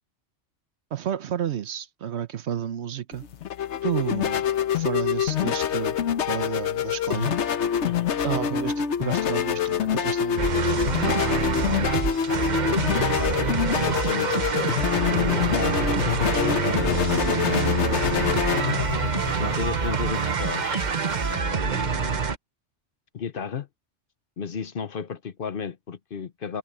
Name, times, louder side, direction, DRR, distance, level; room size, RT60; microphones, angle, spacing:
voice 1, 0.9-3.2 3.8-4.5 4.7-6.0 6.3-7.4 8.2-11.4, right 9 dB, 65° right, 1.0 m, -31 dB
sound 1, 3.1-21.4, left 9 dB, 70° left, 1.2 m, -26 dB
sound 2, 10.4-22.4, right 5 dB, 40° right, 1.0 m, -26 dB
voice 2, 13.0-13.5 13.7-18.2 19.4-20.9 21.3-22.3 23.1-23.7 24.4-26.6, left 6 dB, 55° left, 0.9 m, -33 dB
omnidirectional pair, 1.2 m